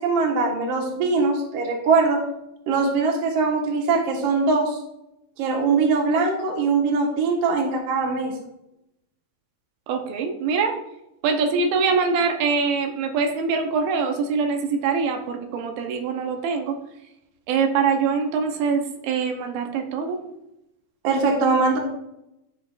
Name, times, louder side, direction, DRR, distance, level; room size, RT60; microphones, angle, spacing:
voice 1, 0.0-2.2 2.7-4.8 5.4-8.3 21.0-21.8, right 4 dB, 55° right, 0 dB, 2.0 m, -21 dB
voice 2, 9.9-10.8 11.2-16.8 17.5-20.2, right 5 dB, 85° right, 4 dB, 2.7 m, -23 dB
13.0 x 4.9 x 2.5 m, 0.84 s
omnidirectional pair, 4.2 m